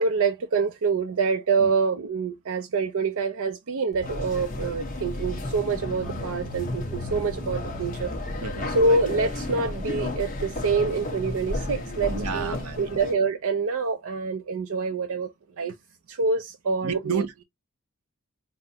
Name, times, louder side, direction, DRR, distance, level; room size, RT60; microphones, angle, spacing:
voice 1, 0.0-8.1 8.7-15.7 16.1-17.3, right 4 dB, 65° right, 0.5 m, -26 dB
Car / Engine, 3.9-11.0, equal, ahead, 1.0 m, -40 dB
sound 1, 4.0-13.1, left 2 dB, 40° left, 1.1 m, -33 dB
voice 2, 8.4-8.8 12.1-13.0 16.8-17.4, right 5 dB, 85° right, 0.9 m, -31 dB
5.5 x 2.1 x 2.8 m
head